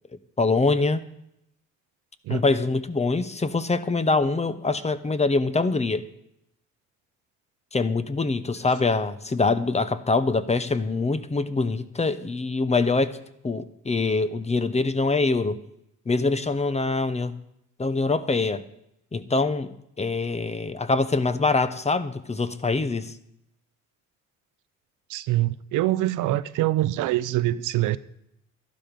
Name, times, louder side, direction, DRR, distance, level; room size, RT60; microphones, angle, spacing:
voice 1, 0.4-1.0 2.3-6.0 7.7-13.2 13.4-15.6 16.1-17.3 17.8-18.6 19.1-23.1, left 3 dB, 20° left, 0.9 m, -24 dB
voice 2, 25.1-28.0, right 15 dB, 90° right, 0.6 m, -24 dB
12.0 x 11.5 x 5.3 m
cardioid pair, 90°, 30 cm